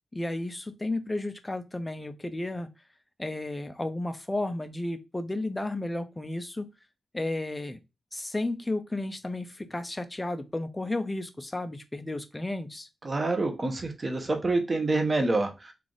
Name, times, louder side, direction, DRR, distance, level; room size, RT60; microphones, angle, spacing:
voice 1, 0.1-2.7 3.2-6.7 7.1-7.8 8.1-12.9, left 2 dB, 15° left, 9 dB, 0.4 m, -33 dB
voice 2, 13.0-15.7, right 2 dB, 30° right, 5 dB, 0.8 m, -27 dB
3.2 x 2.4 x 3.8 m, 0.25 s
wide cardioid pair, 115°, 0 cm